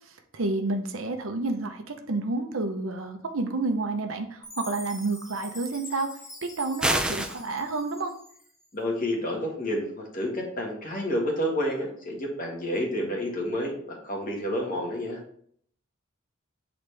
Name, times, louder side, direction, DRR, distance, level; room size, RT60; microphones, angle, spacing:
voice 1, 0.1-8.1, right 3 dB, 80° right, 5 dB, 0.8 m, -30 dB
Chime, 4.4-8.7, left 1 dB, 15° left, 1.2 m, -45 dB
sound 1, 6.8-7.4, right 1 dB, 5° right, 0.4 m, -25 dB
voice 2, 8.7-15.2, equal, 40° left, -1 dB, 1.6 m, -29 dB
8.0 x 3.9 x 3.4 m, 0.62 s
head